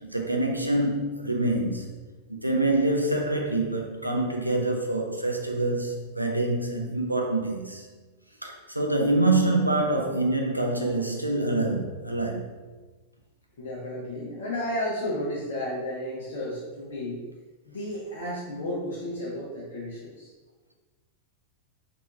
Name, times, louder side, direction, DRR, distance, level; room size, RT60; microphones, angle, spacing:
voice 1, 0.0-1.9 2.3-7.9 8.4-12.5, right 2 dB, 85° right, 0.4 m, -26 dB
voice 2, 13.6-17.2 17.7-20.3, left 1 dB, 60° left, 0.7 m, -33 dB
3.3 x 2.6 x 2.9 m
figure-of-eight pair, 90°, 0 cm